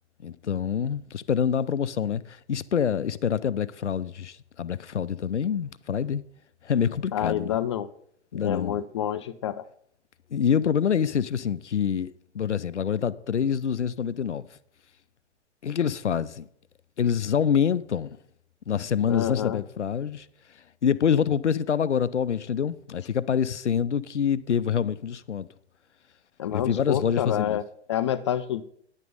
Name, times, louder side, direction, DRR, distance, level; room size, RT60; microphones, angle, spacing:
voice 1, 0.2-6.2 6.6-7.6 8.3-8.8 10.3-14.5 15.6-16.5 17.0-18.2 18.7-20.3 20.8-25.5 26.5-27.6, left 8 dB, 80° left, 0.5 m, -26 dB
voice 2, 7.1-7.9 8.3-9.6 19.1-19.6 26.4-27.6 27.9-28.6, left 10 dB, 25° left, 0.3 m, -28 dB
9.9 x 7.5 x 5.2 m
figure-of-eight pair, 110°, 34 cm